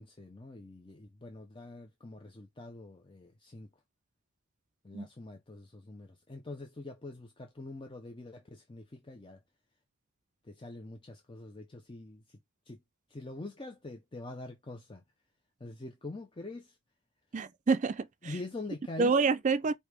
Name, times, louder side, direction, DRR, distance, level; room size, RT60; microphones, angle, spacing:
voice 1, 0.0-3.7 4.8-9.4 10.4-12.4 12.7-12.8 13.1-15.0 15.6-16.8 18.2-19.2, left 2 dB, 20° left, 0.6 m, -45 dB
voice 2, 17.3-18.3 19.0-19.7, right 4 dB, 35° right, 0.3 m, -27 dB
4.7 x 2.8 x 3.4 m
head